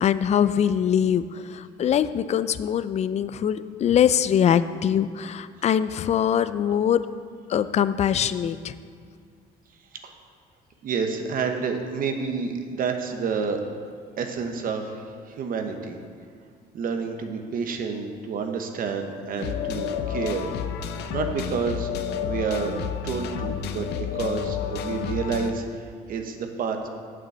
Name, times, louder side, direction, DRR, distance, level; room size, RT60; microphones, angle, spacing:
voice 1, 0.0-1.2 1.5-7.0 7.5-8.7, left 9 dB, 40° left, 14 dB, 0.4 m, -22 dB
voice 2, 10.8-13.6 14.2-16.0 16.7-20.5 21.1-21.9 22.2-22.8 23.0-26.9, right 5 dB, 55° right, 5 dB, 1.1 m, -29 dB
sound 1, 19.4-25.5, left 8 dB, 75° left, 0.7 m, -30 dB
7.5 x 6.1 x 7.9 m, 2.1 s
cardioid pair, 110°, 17 cm